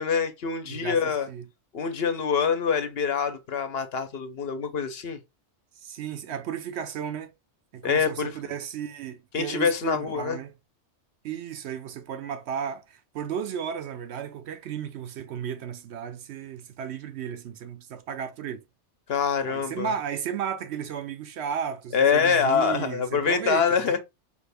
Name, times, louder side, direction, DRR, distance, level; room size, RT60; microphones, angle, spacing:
voice 1, 0.0-1.3 1.7-5.2 7.8-8.3 9.3-10.4 19.1-19.9 21.9-24.0, left 6 dB, 60° left, 0.9 m, -25 dB
voice 2, 0.7-1.5 5.8-7.3 7.7-10.5 11.2-18.6 19.4-24.0, right 8 dB, 70° right, 0.8 m, -34 dB
4.8 x 2.4 x 3.4 m
omnidirectional pair, 1.2 m